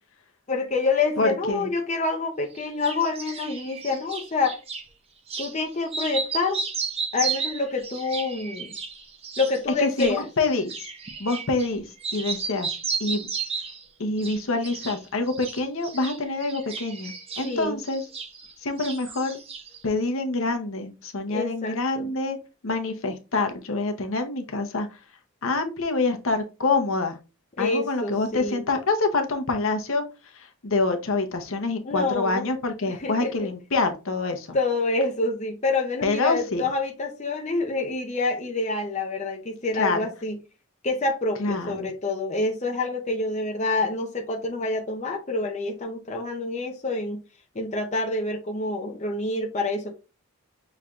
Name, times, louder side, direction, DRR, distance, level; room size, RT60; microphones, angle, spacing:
voice 1, 0.5-4.6 5.4-6.6 7.1-8.7 9.4-10.3 17.4-17.8 21.3-22.1 27.6-28.6 31.8-32.5 32.9-33.5 34.5-40.4 40.8-47.2 47.5-49.9, left 3 dB, 30° left, 0.6 m, -27 dB
voice 2, 1.2-1.7 9.8-10.7 11.2-11.9 12.1-12.7 13.0-13.3 14.0-18.0 18.6-19.4 19.8-22.4 22.6-24.9 25.4-27.2 27.6-34.6 36.0-36.7 39.8-40.0 41.4-41.9, left 3 dB, 65° left, 0.8 m, -26 dB
sound 1, 2.6-4.9 5.3-5.5 5.9-11.7 12.0-13.8 14.2-15.0 15.3-18.5 18.8-19.8, right 5 dB, 25° right, 0.6 m, -33 dB
5.8 x 3.2 x 2.5 m
head